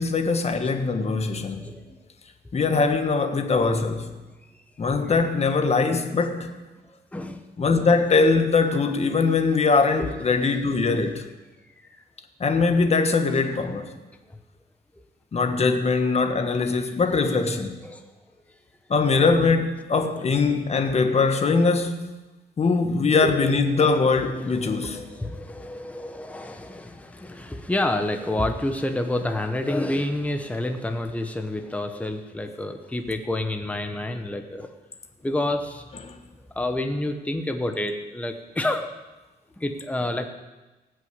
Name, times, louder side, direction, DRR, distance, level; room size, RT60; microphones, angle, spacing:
voice 1, 0.0-1.6 2.5-4.1 4.8-6.5 7.6-11.2 12.4-13.9 15.3-17.8 18.9-22.2 22.6-25.1 36.0-36.2, left 4 dB, 40° left, 1.4 m, -22 dB
voice 2, 1.3-2.0 4.5-4.6 5.1-5.6 6.8-7.4 7.8-7.9 10.0-10.1 11.8-11.9 13.3-13.4 16.7-16.8 17.1-17.2 17.8-18.0 20.3-20.5 20.8-20.9 23.1-34.7 35.2-35.9 36.5-38.9 39.6-40.3, left 1 dB, 10° left, 1.1 m, -29 dB
17.5 x 6.4 x 8.1 m
cardioid pair, 110°, 17 cm